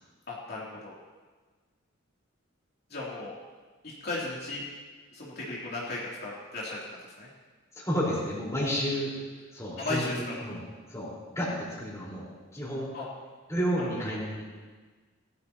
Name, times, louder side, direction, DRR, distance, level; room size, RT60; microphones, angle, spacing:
voice 1, 0.3-0.9 2.9-3.3 4.0-4.6 5.1-6.8 7.2-7.3 9.8-10.2 12.9-13.0, left 2 dB, 50° left, -7 dB, 2.9 m, -35 dB
voice 2, 7.8-9.1 9.5-10.6 10.9-12.3 12.5-12.9 13.5-14.4, equal, 15° left, -6 dB, 4.3 m, -31 dB
20.0 x 14.5 x 2.9 m, 1.4 s
head